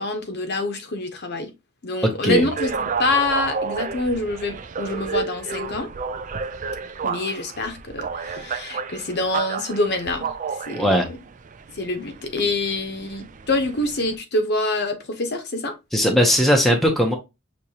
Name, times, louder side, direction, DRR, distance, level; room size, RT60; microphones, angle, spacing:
voice 1, 0.0-1.5 1.8-2.7 3.0-5.9 7.0-11.2 11.7-15.7, left 2 dB, 45° left, 0.8 m, -26 dB
sound 1, 2.3-14.2, right 5 dB, 35° right, 0.4 m, -31 dB
voice 2, 10.8-11.1 15.9-17.2, equal, ahead, 0.7 m, -18 dB
6.3 x 2.9 x 2.8 m
head